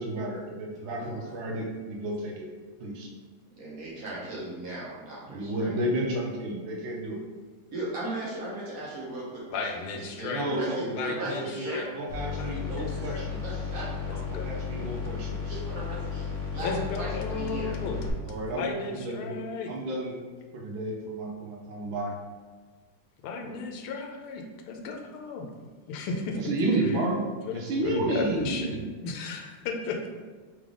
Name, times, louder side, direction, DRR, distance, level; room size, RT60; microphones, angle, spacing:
voice 1, 0.0-2.5 2.8-3.1 5.3-7.2 10.3-13.4 14.3-15.5 18.2-19.4 19.7-20.2 20.5-22.2 26.3-27.2 27.5-28.9, right 1 dB, 75° right, 0 dB, 1.4 m, -31 dB
voice 2, 0.8-1.2 3.6-5.7 7.7-11.9 12.9-14.2 15.5-17.7, right 2 dB, 55° right, -6 dB, 1.1 m, -38 dB
voice 3, 9.5-10.5 10.9-11.9 12.3-13.2 14.1-15.0 16.6-18.0 18.5-19.7 23.2-25.5 25.9-26.4 26.8-27.0 27.4-28.8 29.0-30.1, left 4 dB, 85° left, 3 dB, 1.5 m, -34 dB
sound 1, 12.1-18.1, left 6 dB, 50° left, 0.9 m, -34 dB
3.8 x 3.3 x 3.7 m, 1.4 s
omnidirectional pair, 2.3 m